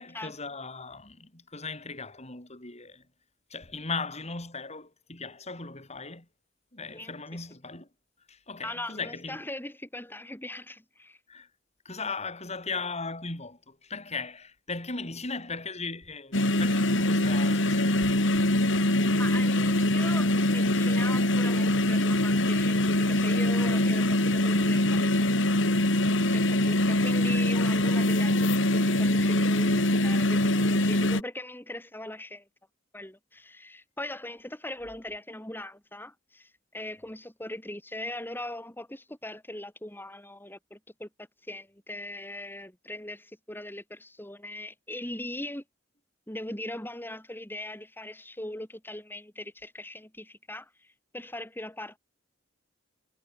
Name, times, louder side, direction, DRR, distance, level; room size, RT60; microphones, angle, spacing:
voice 1, 0.0-3.1 3.5-6.3 6.7-7.9 8.3-9.5 11.3-11.5 11.8-18.2 26.2-26.5, left 4 dB, 35° left, 7.7 m, -38 dB
voice 2, 8.6-11.2 19.1-25.3 26.3-32.5 32.9-45.6 46.3-52.0, left 1 dB, 10° left, 6.6 m, -40 dB
sound 1, 16.3-31.2, left 1 dB, 70° left, 4.3 m, -24 dB
head